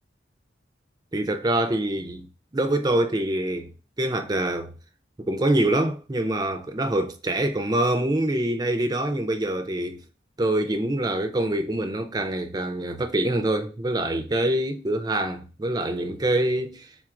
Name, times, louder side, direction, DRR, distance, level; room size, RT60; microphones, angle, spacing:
voice 1, 1.1-3.7 4.0-4.7 5.2-10.0 10.4-16.9, right 1 dB, 20° right, 0.4 m, -25 dB
3.7 x 2.5 x 4.6 m
head